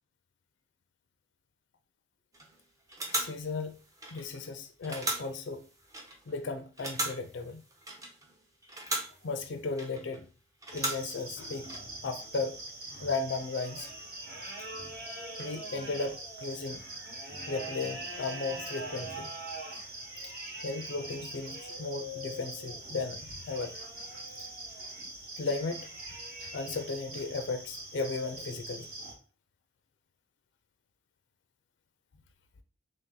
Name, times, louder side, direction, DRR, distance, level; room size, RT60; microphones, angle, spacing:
sound 1, 2.3-2.6 2.9-4.5 4.8-6.4 6.8-8.4 8.6-10.2 10.6-11.8, right 1 dB, 15° right, 0.6 m, -38 dB
voice 1, 3.1-3.8 4.1-5.7 6.3-7.6 9.2-10.2 10.7-11.7 12.0-12.6 13.0-13.9 15.4-16.8 17.5-19.3 20.2-20.3 20.6-23.7 25.4-28.9, left 3 dB, 60° left, 0.4 m, -35 dB
sound 2, 10.7-29.1, right 2 dB, 50° right, 1.1 m, -42 dB
3.3 x 2.7 x 3.7 m
head